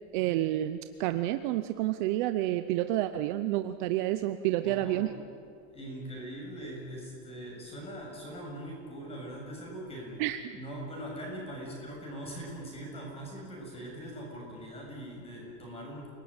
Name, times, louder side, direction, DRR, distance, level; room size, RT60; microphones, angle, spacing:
voice 1, 0.1-5.1 10.2-10.4, right 14 dB, 40° right, 10 dB, 0.7 m, -29 dB
voice 2, 4.5-5.1 5.7-10.2 10.5-16.1, right 1 dB, 15° left, -1 dB, 7.3 m, -41 dB
29.0 x 19.0 x 8.9 m, 2.5 s
supercardioid pair, 175°, 40 cm